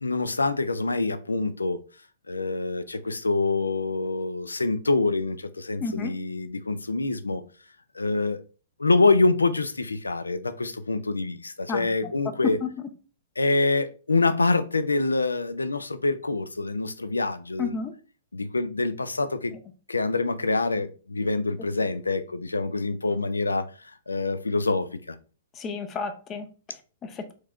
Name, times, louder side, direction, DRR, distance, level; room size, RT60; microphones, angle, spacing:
voice 1, 0.0-1.8 2.3-7.4 7.9-8.4 8.8-12.6 13.4-17.8 18.3-19.5 19.9-23.7 24.1-25.2, left 3 dB, 75° left, 0.4 m, -25 dB
voice 2, 5.8-6.1 11.7-12.1 12.4-12.7 17.6-17.9 25.6-27.3, left 5 dB, 25° left, 0.5 m, -32 dB
4.4 x 3.0 x 2.4 m
figure-of-eight pair, 110°, 0 cm